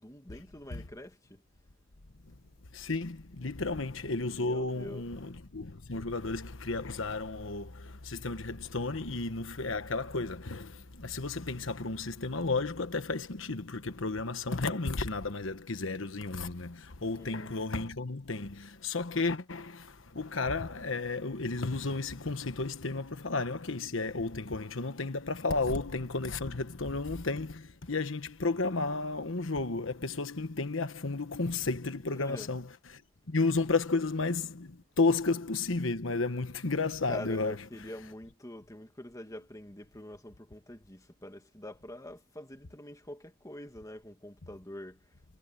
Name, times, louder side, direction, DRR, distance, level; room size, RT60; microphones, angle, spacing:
voice 1, 0.0-1.4 3.4-3.5 4.3-5.0 17.2-17.5 32.2-32.5 37.1-45.1, left 1 dB, 15° left, 1.8 m, -45 dB
voice 2, 2.7-33.0 33.3-37.6, left 3 dB, 70° left, 1.2 m, -33 dB
head